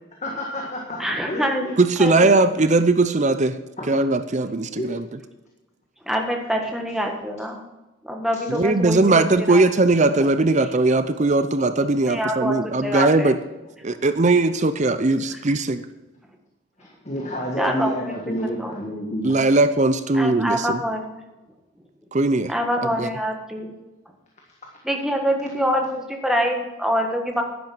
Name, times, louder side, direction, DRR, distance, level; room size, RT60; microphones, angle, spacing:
voice 1, 0.2-1.8 3.8-4.0 4.7-5.0 16.8-19.4, equal, 35° left, 0 dB, 1.7 m, -30 dB
voice 2, 1.0-1.7 2.0-2.4 6.0-7.6 8.0-9.6 12.1-13.3 17.6-18.2 18.6-18.8 20.1-21.2 22.5-23.7 24.8-27.4, equal, ahead, 2 dB, 1.7 m, -25 dB
voice 3, 1.8-3.6 3.9-5.1 8.5-13.4 13.8-15.8 19.2-20.8 22.1-22.5 23.0-23.1, right 2 dB, 35° right, 11 dB, 0.6 m, -19 dB
10.5 x 10.5 x 6.1 m, 1.1 s
head